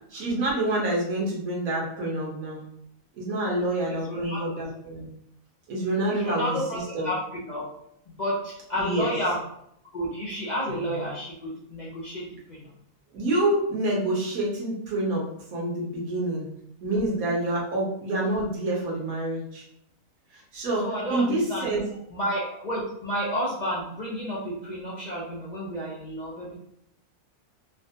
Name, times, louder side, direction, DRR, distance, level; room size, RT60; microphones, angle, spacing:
voice 1, 0.1-2.6 3.2-5.1 5.7-7.1 8.8-9.1 13.1-16.5 16.8-19.6 20.3-21.8, right 1 dB, 80° right, -3 dB, 1.4 m, -27 dB
voice 2, 3.9-4.4 6.1-6.8 7.0-7.2 7.4-7.6 8.2-9.4 9.9-12.7 20.8-26.5, equal, 50° left, -6 dB, 0.5 m, -31 dB
3.3 x 2.2 x 2.7 m, 0.73 s
omnidirectional pair, 1.4 m